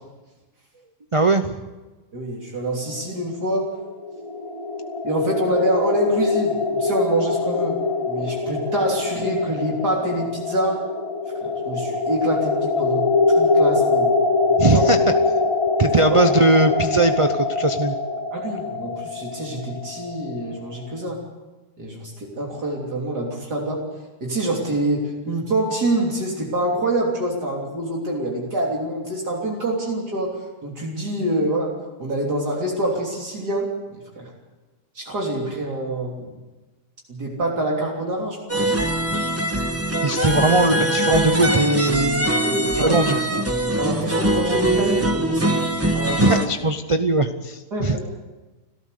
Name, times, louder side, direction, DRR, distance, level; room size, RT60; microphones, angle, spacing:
voice 1, 1.1-1.6 14.6-15.0 15.8-17.9 40.0-42.3 42.7-43.2 46.2-48.0, right 2 dB, 35° right, 8 dB, 0.5 m, -19 dB
voice 2, 2.1-3.7 5.0-7.8 8.1-10.8 11.4-14.1 14.7-14.8 18.3-21.2 21.8-23.8 24.2-30.4 30.6-31.7 32.0-34.3 35.0-36.3 37.1-38.6 42.4-43.0 43.8-46.4 47.7-48.1, right 1 dB, 70° right, -2 dB, 3.8 m, -26 dB
sound 1, 3.8-20.6, left 3 dB, 15° left, 2.2 m, -23 dB
sound 2, 38.5-46.5, right 1 dB, 10° right, 1.2 m, -22 dB
30.0 x 13.5 x 6.7 m, 1.2 s
omnidirectional pair, 1.8 m